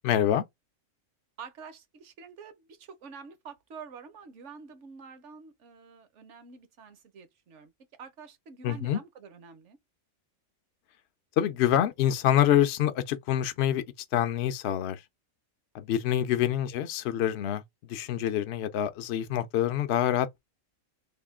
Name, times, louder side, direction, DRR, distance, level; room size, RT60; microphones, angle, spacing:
voice 1, 0.0-0.4 8.6-9.0 11.4-13.8 14.1-15.0 15.7-17.6 17.9-20.4, left 11 dB, 65° left, 0.7 m, -26 dB
voice 2, 1.4-7.7 8.0-9.8 16.3-16.6, right 5 dB, 65° right, 1.1 m, -47 dB
3.5 x 2.2 x 3.5 m
omnidirectional pair, 1.4 m